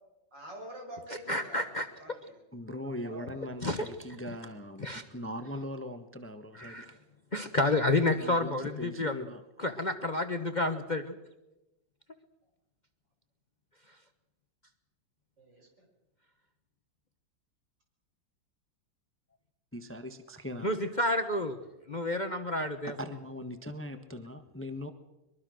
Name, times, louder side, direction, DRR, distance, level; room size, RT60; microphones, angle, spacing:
voice 1, 0.3-2.4 2.8-3.5 15.4-15.8, right 1 dB, 80° right, 2 dB, 6.7 m, -47 dB
voice 2, 1.3-1.8 3.6-3.9 4.8-5.0 6.5-6.9 7.3-9.2 9.6-11.1 20.6-21.6 21.9-22.9, left 2 dB, 30° left, 7 dB, 1.1 m, -30 dB
voice 3, 2.5-7.0 8.1-9.4 19.7-20.9 23.0-24.9, left 1 dB, 10° left, 8 dB, 1.1 m, -40 dB
23.0 x 22.5 x 6.4 m, 0.97 s
omnidirectional pair, 1.9 m